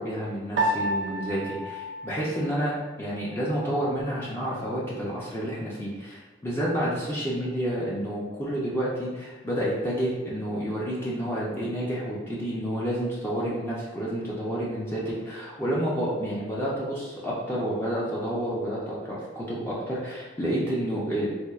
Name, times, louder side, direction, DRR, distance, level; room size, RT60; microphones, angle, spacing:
voice 1, 0.0-21.3, equal, 10° left, -7 dB, 0.4 m, -29 dB
Piano, 0.6-3.1, right 1 dB, 55° right, 0.5 m, -30 dB
4.2 x 2.6 x 2.3 m, 1.2 s
head